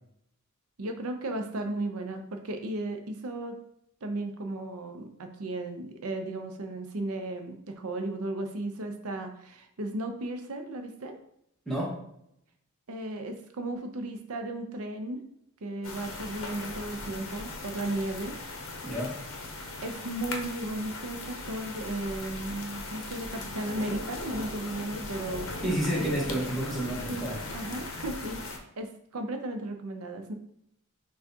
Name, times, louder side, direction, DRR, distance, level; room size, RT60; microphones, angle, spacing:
voice 1, 0.8-3.6 4.0-11.2 12.9-15.2 15.6-18.3 19.8-25.5 25.9-26.0 27.1-27.2 27.5-30.3, right 1 dB, 80° right, 6 dB, 0.6 m, -35 dB
voice 2, 11.7-12.0 18.8-19.1 25.6-27.4, right 1 dB, ahead, -6 dB, 1.1 m, -30 dB
sound 1, 15.8-28.6, left 2 dB, 65° left, 0.6 m, -39 dB
5.9 x 2.3 x 2.7 m, 0.73 s
head